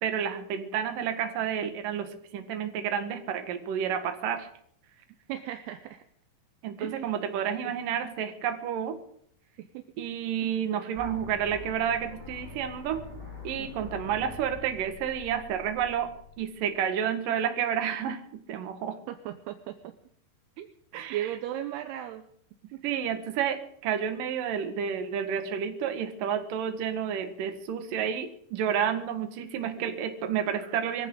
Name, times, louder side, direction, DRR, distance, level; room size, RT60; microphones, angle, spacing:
voice 1, 0.0-4.5 6.6-9.0 10.0-13.0 13.4-16.1 16.4-18.2 18.5-19.0 20.9-21.3 22.8-31.1, right 8 dB, 60° right, 7 dB, 2.9 m, -30 dB
voice 2, 5.3-6.0 6.8-7.1 7.6-7.8 9.6-9.8 10.4-10.5 13.6-13.7 19.1-19.9 20.6-20.7 21.1-22.3 22.7-22.8, right 12 dB, 80° right, 8 dB, 2.7 m, -36 dB
sound 1, 11.0-16.9, left 3 dB, 10° left, 4.6 m, -45 dB
24.0 x 15.5 x 3.8 m, 0.66 s
omnidirectional pair, 4.9 m